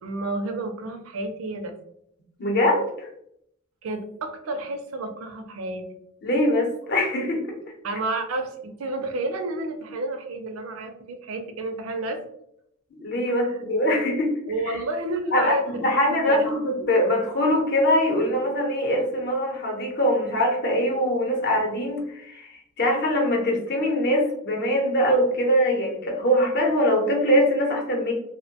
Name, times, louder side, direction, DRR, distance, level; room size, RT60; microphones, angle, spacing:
voice 1, 0.0-1.7 3.8-5.8 7.8-12.2 13.3-13.6 14.5-15.6 16.0-16.5 16.8-16.9, right 2 dB, 75° right, 5 dB, 0.4 m, -30 dB
voice 2, 2.4-3.1 6.2-7.4 12.9-14.3 14.6-14.8 15.3-15.5 15.8-28.1, equal, 55° left, -1 dB, 0.7 m, -22 dB
2.5 x 2.1 x 2.7 m, 0.76 s
head